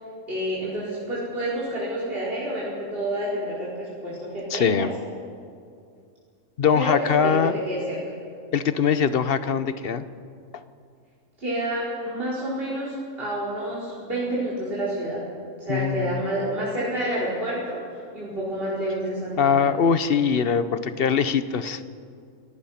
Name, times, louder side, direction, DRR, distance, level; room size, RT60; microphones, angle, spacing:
voice 1, 0.3-4.9 6.7-8.0 11.4-15.2 15.6-17.8 18.1-19.7, right 1 dB, 40° right, -8 dB, 5.1 m, -29 dB
voice 2, 4.5-4.9 6.6-7.5 8.5-10.0 15.7-16.2 19.4-21.8, left 6 dB, 50° left, 12 dB, 0.9 m, -22 dB
29.0 x 18.5 x 5.8 m, 2.3 s
omnidirectional pair, 1.4 m